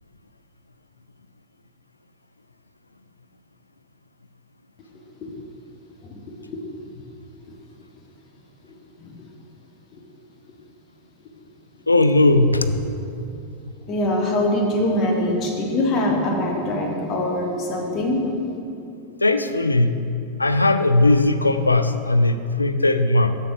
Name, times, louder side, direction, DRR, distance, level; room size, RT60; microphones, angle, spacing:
voice 1, 11.9-12.8 19.2-20.1 20.4-23.4, left 2 dB, 80° left, 9 dB, 0.3 m, -18 dB
voice 2, 13.9-18.2, left 1 dB, 35° left, 0 dB, 1.0 m, -23 dB
6.9 x 6.6 x 3.8 m, 2.6 s
figure-of-eight pair, 90°, 0 cm